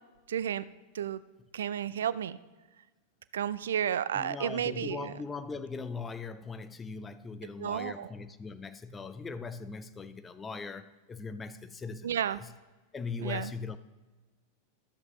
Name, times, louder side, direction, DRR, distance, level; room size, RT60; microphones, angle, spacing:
voice 1, 0.3-0.6 0.9-1.2 1.5-2.4 3.3-5.1 7.6-8.1 12.0-12.4 13.2-13.5, right 9 dB, 65° right, 0.3 m, -32 dB
voice 2, 4.1-12.5 12.9-13.8, left 4 dB, 15° left, 0.5 m, -40 dB
13.0 x 7.6 x 3.1 m
figure-of-eight pair, 90°, 0 cm